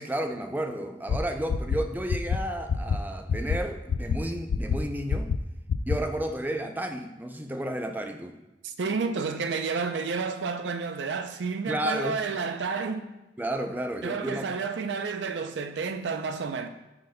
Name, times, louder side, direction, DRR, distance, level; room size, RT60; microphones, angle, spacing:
voice 1, 0.0-5.3 5.9-8.3 11.7-12.2 13.4-14.5, right 1 dB, 10° right, 0.4 m, -32 dB
sound 1, 1.1-1.2 1.5-1.8 2.1-2.4 2.7-3.0 3.3-3.6 3.9-4.2 4.5-4.8 5.1-5.4 5.7-6.0, left 6 dB, 85° left, 0.3 m, -25 dB
voice 2, 8.6-13.1 14.0-16.7, right 5 dB, 75° right, 0.5 m, -30 dB
11.5 x 3.9 x 2.2 m
head